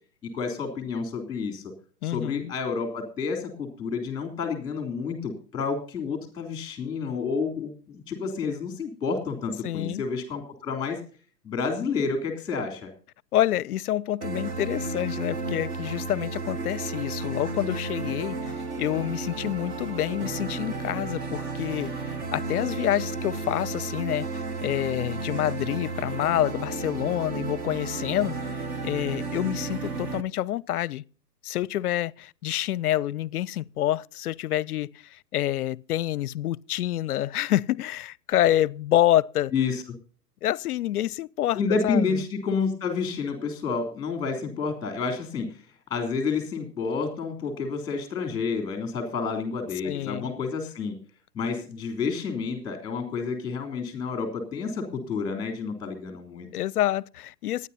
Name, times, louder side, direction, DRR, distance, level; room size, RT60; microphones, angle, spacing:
voice 1, 0.2-1.6 2.0-11.0 11.4-12.9 39.5-39.8 41.5-45.6 45.9-50.9 51.3-56.5, left 5 dB, 10° left, 3.3 m, -29 dB
voice 2, 2.0-2.5 9.6-10.0 13.3-31.0 31.4-39.5 40.4-42.2 49.8-50.3 56.5-57.7, left 13 dB, 65° left, 0.6 m, -27 dB
sound 1, 14.2-30.2, right 3 dB, 15° right, 0.5 m, -33 dB
25.0 x 9.8 x 2.8 m
hypercardioid pair, 135°, 48 cm